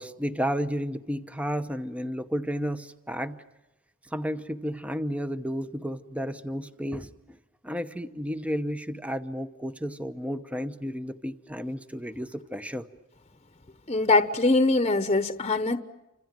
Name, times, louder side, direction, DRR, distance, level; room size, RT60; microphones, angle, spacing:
voice 1, 0.0-3.4 4.1-7.1 7.6-12.9, equal, 5° right, 0.9 m, -32 dB
voice 2, 13.9-15.8, left 2 dB, 30° left, 1.1 m, -22 dB
29.0 x 26.5 x 7.6 m
head